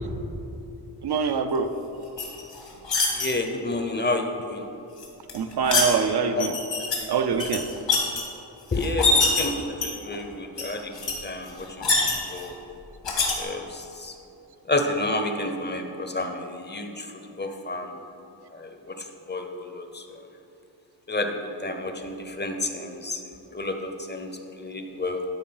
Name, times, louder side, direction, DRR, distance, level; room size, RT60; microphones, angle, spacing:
voice 1, 1.0-1.7 5.3-6.5 7.1-7.6, right 6 dB, 65° right, 8 dB, 0.6 m, -24 dB
sound 1, 2.2-3.3 5.0-5.9 6.4-7.0 7.3-8.2 8.8-9.4 9.8-10.2 10.6-10.7 10.9-11.1 11.5-12.5 13.0-13.3, left 3 dB, 80° left, 2.0 m, -24 dB
voice 2, 3.1-4.6 6.3-6.5 8.7-10.9 11.2-11.9 12.3-12.6 13.4-14.1 14.7-18.0 18.5-20.2 21.1-21.3 21.6-23.2 23.5-24.3 24.6-25.2, left 2 dB, 25° left, 5 dB, 0.6 m, -30 dB
12.0 x 4.6 x 5.5 m, 2.8 s
wide cardioid pair, 145°, 43 cm